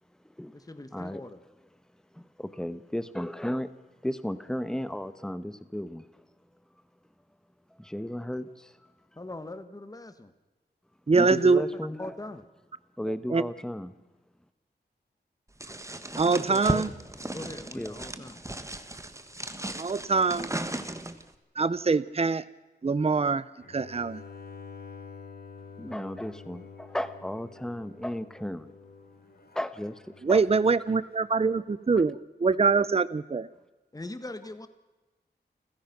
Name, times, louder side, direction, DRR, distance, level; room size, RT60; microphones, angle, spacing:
voice 1, 0.5-1.4 9.2-10.3 11.2-11.4 12.0-12.5 16.3-16.8 17.1-18.4 33.9-34.7, left 2 dB, 20° left, 1.4 m, -41 dB
voice 2, 2.1-3.7 4.0-6.1 7.8-8.7 11.1-12.1 13.0-13.9 17.7-18.0 25.8-28.7 29.5-30.4 31.4-31.5 31.9-32.0, equal, 5° left, 1.1 m, -34 dB
voice 3, 11.1-11.6 13.3-13.4 16.2-16.9 19.8-20.5 21.6-22.4 22.8-24.2 30.2-33.5, right 4 dB, 35° right, 0.7 m, -24 dB
sound 1, 15.6-21.3, right 1 dB, 15° right, 1.5 m, -36 dB
Bowed string instrument, 23.6-30.6, left 5 dB, 65° left, 3.1 m, -48 dB
29.0 x 15.5 x 6.0 m
wide cardioid pair, 95°, 18 cm